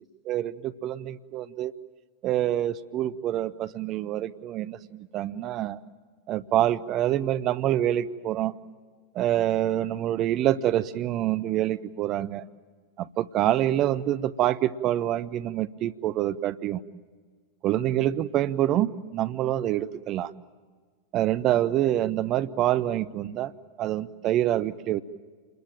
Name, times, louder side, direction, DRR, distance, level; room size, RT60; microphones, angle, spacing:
voice 1, 0.3-1.7 2.2-5.8 6.3-8.5 9.1-12.4 13.0-16.8 17.6-20.3 21.1-23.5 23.8-25.0, right 12 dB, 35° right, 15 dB, 0.8 m, -26 dB
28.5 x 21.5 x 9.0 m, 1.5 s
figure-of-eight pair, 90°, 0 cm